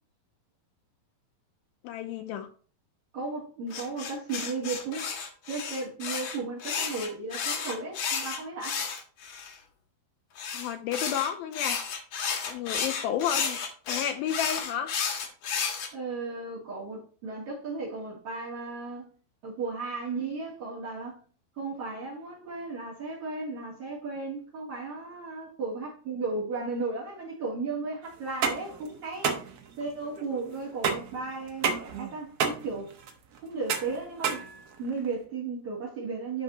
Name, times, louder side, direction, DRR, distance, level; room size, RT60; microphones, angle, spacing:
voice 1, 1.8-2.5 10.5-12.0 12.5-13.6 13.9-14.9, left 9 dB, 80° left, 2.3 m, -31 dB
voice 2, 3.1-5.1 5.5-8.8 15.9-19.1 19.4-21.2 21.6-29.3 29.8-33.0 33.4-34.4 34.8-36.4, right 3 dB, 50° right, 3.8 m, -35 dB
sound 1, 3.7-9.5 10.4-15.9, left 6 dB, 60° left, 1.9 m, -32 dB
sound 2, 28.2-35.1, right 6 dB, 75° right, 1.4 m, -31 dB
11.5 x 4.2 x 2.9 m
omnidirectional pair, 4.4 m